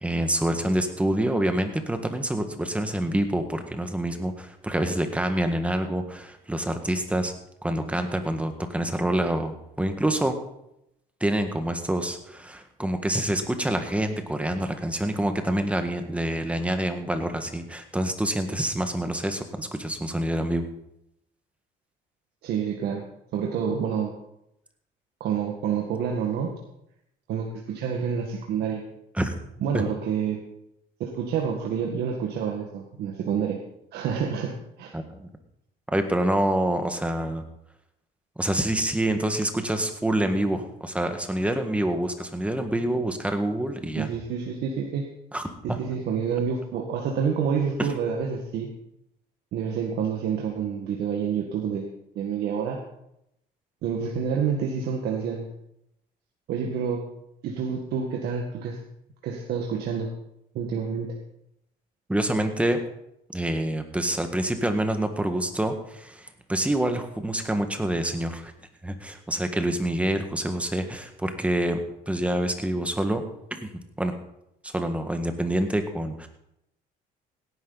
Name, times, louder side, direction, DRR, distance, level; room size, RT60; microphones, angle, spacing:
voice 1, 0.0-7.3 7.6-10.3 11.2-20.7 29.1-29.3 29.7-29.8 34.9-35.3 35.9-37.4 38.4-44.1 45.3-45.8 47.8-47.9 62.1-62.8 63.3-68.5 68.8-73.2 73.5-73.7 74.0-74.1 74.6-76.3, right 1 dB, 5° right, 6 dB, 1.7 m, -27 dB
voice 2, 22.4-23.1 23.3-24.1 25.2-26.6 27.3-28.8 29.6-30.4 31.0-33.6 33.9-34.9 44.0-45.1 45.6-48.7 49.5-52.8 53.8-55.5 56.5-57.0 57.4-58.8 59.2-60.1 60.5-61.1, right 7 dB, 75° right, 1 dB, 1.8 m, -28 dB
17.0 x 11.0 x 4.1 m, 0.80 s
cardioid pair, 110°, 17 cm